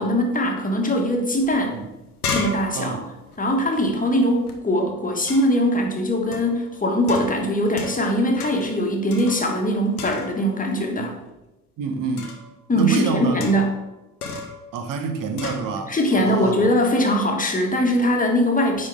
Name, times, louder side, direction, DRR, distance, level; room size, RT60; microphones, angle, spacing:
voice 1, 0.0-1.8 2.3-3.0 3.4-11.1 12.7-13.7 15.9-18.9, equal, 20° left, 1 dB, 1.6 m, -21 dB
sound 1, 1.4-1.5 1.8-4.5 5.3-5.7 6.3-6.6 7.1-8.1 8.4-8.8 9.1-9.7 10.0-10.6 12.2-12.5 13.4-13.8 14.2-14.6 15.4-15.7, left 4 dB, 90° left, 0.8 m, -33 dB
voice 2, 11.8-12.3 12.7-13.4 14.7-16.7, right 5 dB, 45° right, 6 dB, 1.2 m, -27 dB
9.5 x 4.5 x 3.6 m, 0.99 s
figure-of-eight pair, 55°, 44 cm